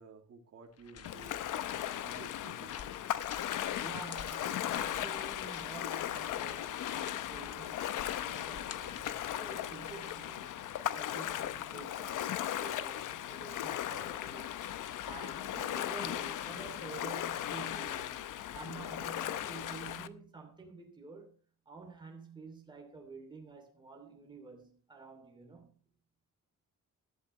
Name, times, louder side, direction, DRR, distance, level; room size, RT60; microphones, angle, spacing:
voice 1, 0.0-1.4 2.0-3.0, right 4 dB, 50° right, 2.4 m, -53 dB
sound 1, 0.8-10.3, left 8 dB, 50° left, 1.0 m, -49 dB
Ocean, 1.0-20.1, left 11 dB, 75° left, 0.8 m, -37 dB
voice 2, 3.8-14.6 14.8-21.3 21.6-25.8, right 4 dB, 15° right, 2.8 m, -50 dB
sound 2, 7.8-17.9, left 12 dB, 25° left, 4.8 m, -64 dB
15.0 x 12.5 x 3.2 m
cardioid pair, 155°, 32 cm